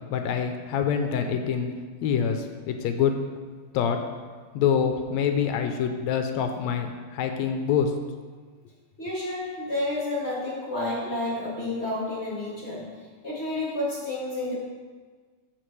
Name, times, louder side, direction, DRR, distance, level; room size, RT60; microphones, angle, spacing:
voice 1, 0.1-1.7 2.0-3.1 3.7-4.0 4.5-7.9, left 7 dB, 80° left, 5 dB, 1.8 m, -25 dB
voice 2, 9.0-14.6, left 2 dB, 30° left, -5 dB, 1.6 m, -30 dB
13.5 x 6.6 x 3.2 m, 1.5 s
omnidirectional pair, 3.3 m